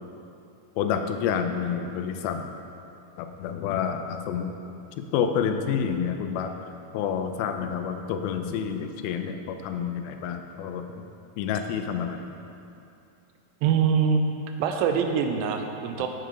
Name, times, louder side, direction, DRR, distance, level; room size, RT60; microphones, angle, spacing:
voice 1, 0.8-2.4 3.2-4.5 5.0-6.5 6.9-10.8 11.4-12.3, left 7 dB, 90° left, 6 dB, 2.4 m, -28 dB
voice 2, 13.6-14.2 14.6-16.1, right 7 dB, 85° right, 5 dB, 2.3 m, -24 dB
7.8 x 4.7 x 5.0 m, 2.7 s
omnidirectional pair, 4.2 m